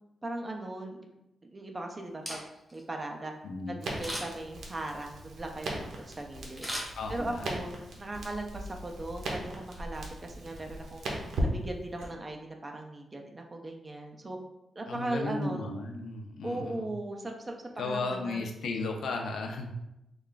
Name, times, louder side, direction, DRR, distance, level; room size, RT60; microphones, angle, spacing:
voice 1, 0.2-1.1 1.4-2.4 2.7-3.3 3.7-6.7 7.1-11.1 11.4-14.4 14.8-15.7 16.4-18.5, right 2 dB, 20° right, 3 dB, 0.4 m, -38 dB
Camera, 2.1-2.8 4.0-4.5 6.6-7.5 7.9-8.0, equal, ahead, 0.8 m, -38 dB
voice 2, 3.4-3.8 7.0-7.5 14.9-16.9 17.8-19.7, left 3 dB, 75° left, 3 dB, 0.5 m, -35 dB
Crackle, 3.8-12.1, right 1 dB, 80° right, 0.7 m, -38 dB
3.2 x 2.3 x 3.8 m, 0.88 s
wide cardioid pair, 165°, 0 cm